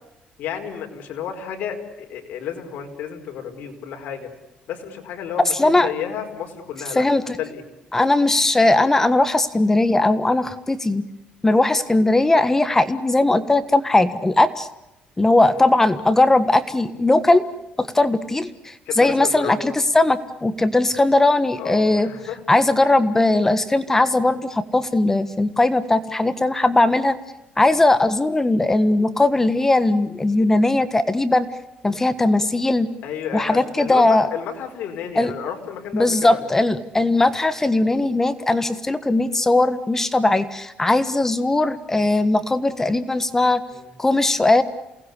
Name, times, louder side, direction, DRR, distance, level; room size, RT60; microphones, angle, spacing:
voice 1, 0.4-4.3 4.7-7.1 7.4-7.6 15.5-15.7 18.9-19.7 21.6-22.4 22.8-23.0 33.0-36.4 43.7-43.9, left 8 dB, 70° left, 3 dB, 5.0 m, -31 dB
voice 2, 5.6-5.9 6.9-7.4 7.9-11.0 11.4-14.7 15.2-17.4 17.8-22.1 22.5-27.2 27.6-31.5 31.8-32.9 33.3-34.3 35.1-35.3 35.9-43.6 44.0-44.6, left 2 dB, 15° left, 12 dB, 1.5 m, -19 dB
28.5 x 19.5 x 8.4 m, 0.92 s
cardioid pair, 110°, 3 cm